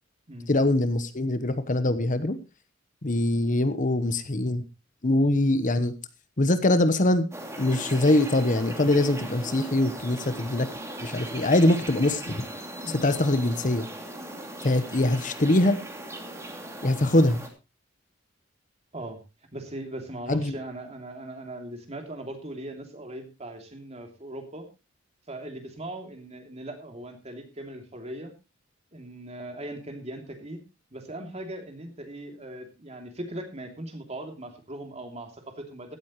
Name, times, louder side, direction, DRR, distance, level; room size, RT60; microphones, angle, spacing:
voice 1, 0.5-2.4 3.0-4.6 5.0-5.9 6.4-7.3 7.6-10.7 11.0-12.4 12.9-13.9 14.6-15.8 16.8-17.4 20.3-20.5, left 1 dB, 40° left, 11 dB, 1.0 m, -23 dB
sound 1, 7.3-17.5, right 1 dB, 15° right, 2.7 m, -38 dB
voice 2, 19.5-24.7 25.3-28.3 28.9-30.6 30.9-36.0, right 1 dB, 35° right, 4 dB, 3.0 m, -39 dB
16.0 x 12.5 x 3.1 m, 0.27 s
head